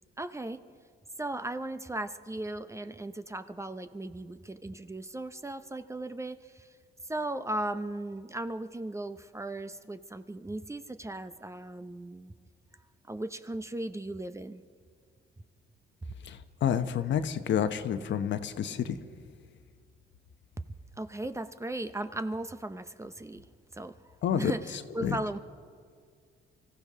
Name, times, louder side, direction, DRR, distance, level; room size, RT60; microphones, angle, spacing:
voice 1, 0.2-0.6 1.2-6.7 7.0-12.3 13.1-14.6 21.0-23.5 23.7-24.0 24.4-25.4, right 1 dB, 15° right, 11 dB, 0.6 m, -37 dB
voice 2, 16.2-18.9 24.2-24.5 25.0-25.1, left 9 dB, 65° left, 9 dB, 1.0 m, -29 dB
25.0 x 15.5 x 3.7 m, 2.1 s
cardioid pair, 90°, 20 cm